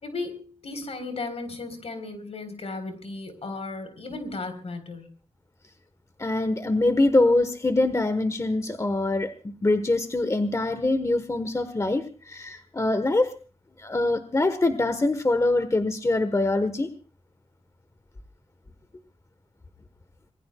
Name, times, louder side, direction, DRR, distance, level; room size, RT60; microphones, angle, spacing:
voice 1, 0.0-5.1, left 3 dB, 70° left, 8 dB, 3.8 m, -35 dB
voice 2, 6.2-13.3 13.8-16.9, left 2 dB, 30° left, 10 dB, 1.2 m, -24 dB
26.0 x 20.5 x 2.3 m, 0.37 s
wide cardioid pair, 95°, 11 cm